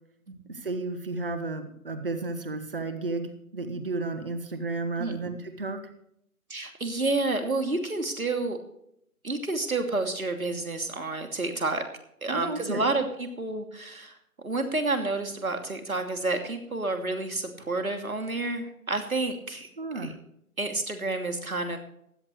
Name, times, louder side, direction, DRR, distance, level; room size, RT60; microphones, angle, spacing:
voice 1, 0.5-5.8 12.3-12.9 19.8-20.2, right 3 dB, 40° right, 8 dB, 1.5 m, -33 dB
voice 2, 6.5-8.6 9.2-11.8 12.2-14.2 14.4-19.7 20.0-20.1 20.6-21.8, right 2 dB, 65° right, 5 dB, 2.8 m, -29 dB
16.0 x 12.0 x 3.2 m, 0.74 s
figure-of-eight pair, 155°, 44 cm